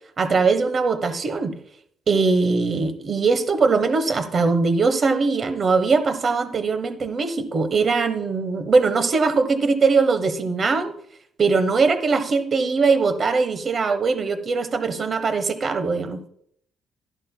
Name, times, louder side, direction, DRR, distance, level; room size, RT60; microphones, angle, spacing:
voice 1, 0.2-1.5 2.1-10.9 11.4-16.2, right 4 dB, 45° right, 10 dB, 1.1 m, -21 dB
12.0 x 11.0 x 2.2 m, 0.67 s
cardioid pair, 90°, 0 cm